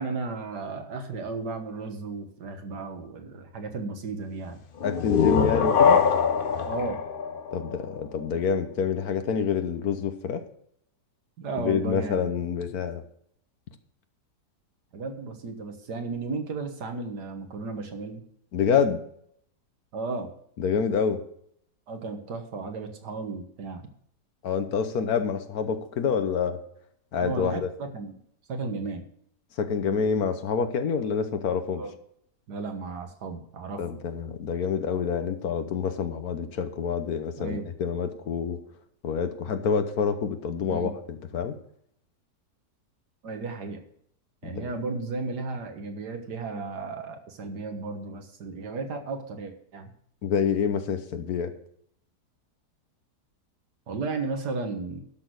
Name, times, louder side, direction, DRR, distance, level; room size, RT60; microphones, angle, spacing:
voice 1, 0.0-4.6 6.6-7.0 11.4-12.3 14.9-18.2 19.9-20.3 21.9-23.9 27.2-28.2 28.5-29.0 31.8-31.9 32.5-33.8 37.4-37.7 40.7-41.0 43.2-43.8 44.4-49.9 53.9-55.0, right 3 dB, 70° right, 5 dB, 1.9 m, -34 dB
voice 2, 4.8-6.0 7.5-10.4 11.6-13.0 18.5-19.0 20.6-21.2 24.4-26.6 27.1-27.7 29.6-31.8 33.8-38.6 39.0-41.6 44.4-44.7 50.2-51.5, left 6 dB, 65° left, 9 dB, 1.4 m, -27 dB
sound 1, 4.8-8.4, left 6 dB, 50° left, 0.7 m, -23 dB
12.0 x 6.2 x 6.3 m, 0.68 s
omnidirectional pair, 1.8 m